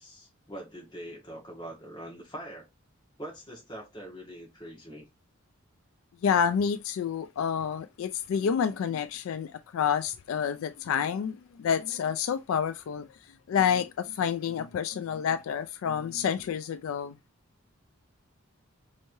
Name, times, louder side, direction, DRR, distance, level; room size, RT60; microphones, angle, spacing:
voice 1, 0.0-2.7 3.2-5.0, right 1 dB, 20° left, 1.5 m, -43 dB
voice 2, 6.2-13.1 13.5-17.2, left 7 dB, 75° left, 0.3 m, -28 dB
4.4 x 3.1 x 2.7 m
head